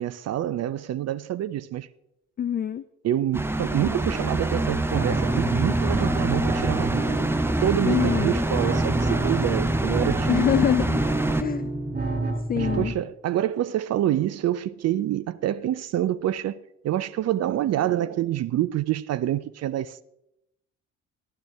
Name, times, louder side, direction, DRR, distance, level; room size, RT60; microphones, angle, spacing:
voice 1, 0.0-1.9 3.0-7.3 7.6-10.5 12.5-20.0, right 12 dB, 40° right, 0.5 m, -27 dB
voice 2, 2.4-2.8 7.9-8.4 10.3-11.0 11.4-11.7 12.5-12.9, left 9 dB, 25° left, 0.4 m, -25 dB
sound 1, 3.3-11.4, right 1 dB, 5° right, 0.8 m, -26 dB
sound 2, 4.9-12.9, right 2 dB, 20° right, 4.0 m, -29 dB
14.0 x 11.5 x 3.4 m
figure-of-eight pair, 45°, 40 cm